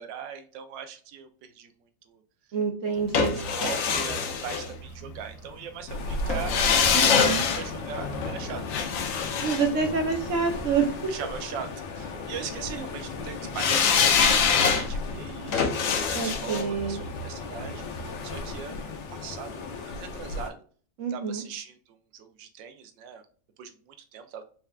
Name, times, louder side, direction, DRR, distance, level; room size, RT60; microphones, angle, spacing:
voice 1, 0.0-1.7 2.1-2.2 3.2-8.6 11.1-11.7 12.0-20.5 21.1-23.2 23.6-24.4, right 7 dB, 85° right, 8 dB, 1.3 m, -40 dB
voice 2, 2.5-3.4 6.9-7.4 9.4-10.9 16.1-17.0 21.0-21.4, right 5 dB, 60° right, 4 dB, 0.8 m, -27 dB
sound 1, 3.1-5.3 6.3-10.5 13.5-18.5 18.8-18.9, left 6 dB, 70° left, 0.8 m, -25 dB
sound 2, 5.9-20.5, left 3 dB, 90° left, 1.5 m, -36 dB
4.3 x 3.4 x 2.3 m, 0.43 s
omnidirectional pair, 1.9 m